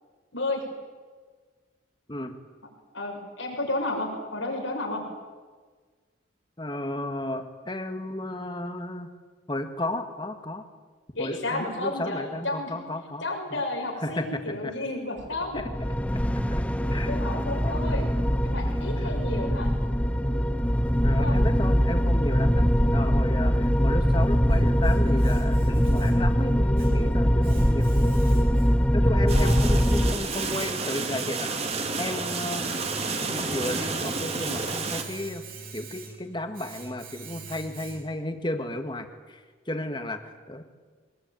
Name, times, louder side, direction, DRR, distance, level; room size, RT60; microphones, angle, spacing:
voice 1, 0.3-0.6 2.9-5.0 11.1-12.7 13.2-15.6 17.1-18.1 18.4-19.7 21.1-21.3 29.3-29.6, left 2 dB, 80° left, 1 dB, 6.4 m, -32 dB
voice 2, 6.6-9.1 9.5-10.6 11.2-13.6 14.0-14.7 15.5-15.7 16.5-16.6 16.9-17.8 18.7-19.1 21.0-27.9 28.9-31.5 32.0-32.7 33.1-35.4 35.7-40.6, left 1 dB, 25° left, 7 dB, 1.9 m, -34 dB
sound 1, 15.5-30.1, equal, 5° left, 0.8 m, -22 dB
Domestic sounds home sounds, 24.0-38.3, right 3 dB, 45° right, 5.0 m, -45 dB
sound 2, 29.3-35.0, right 4 dB, 30° right, 2.3 m, -30 dB
23.5 x 21.0 x 9.3 m, 1.4 s
head